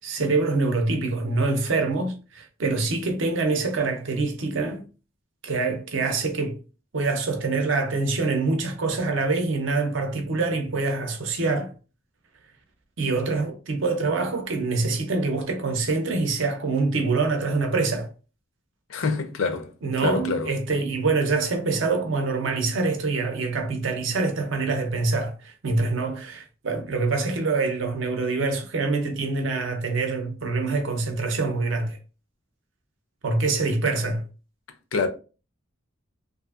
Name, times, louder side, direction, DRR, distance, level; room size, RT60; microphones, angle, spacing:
voice 1, 0.0-4.8 5.4-6.6 6.9-11.7 13.0-18.1 19.8-32.0 33.2-34.2, right 3 dB, 65° right, 0.6 m, -25 dB
voice 2, 18.9-19.7 20.0-20.5 34.9-35.1, left 4 dB, 80° left, 0.5 m, -25 dB
2.7 x 2.5 x 2.4 m
head